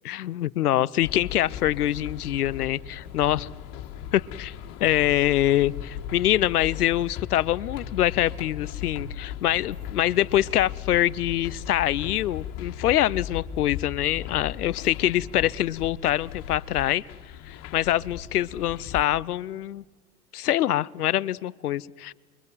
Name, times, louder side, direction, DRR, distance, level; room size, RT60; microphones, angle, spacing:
voice 1, 0.0-3.5 4.1-4.5 4.8-17.0 17.5-19.8 20.3-22.1, left 13 dB, 80° left, 22 dB, 0.8 m, -24 dB
sound 1, 1.0-19.0, left 9 dB, 45° left, 3.3 m, -37 dB
28.5 x 23.5 x 8.1 m, 1.5 s
hypercardioid pair, 90°, 45 cm